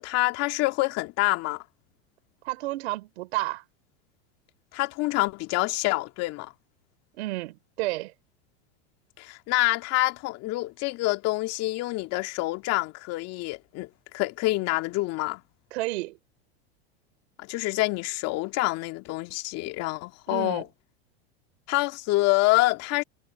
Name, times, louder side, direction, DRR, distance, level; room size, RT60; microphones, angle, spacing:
voice 1, 0.0-1.6 4.7-6.5 9.2-15.4 17.4-20.6 21.7-23.0, left 20 dB, 50° left, 2.1 m, -27 dB
voice 2, 2.4-3.6 7.1-8.1 15.7-16.2 20.3-20.6, right 19 dB, 70° right, 3.3 m, -31 dB
supercardioid pair, 115°, 33 cm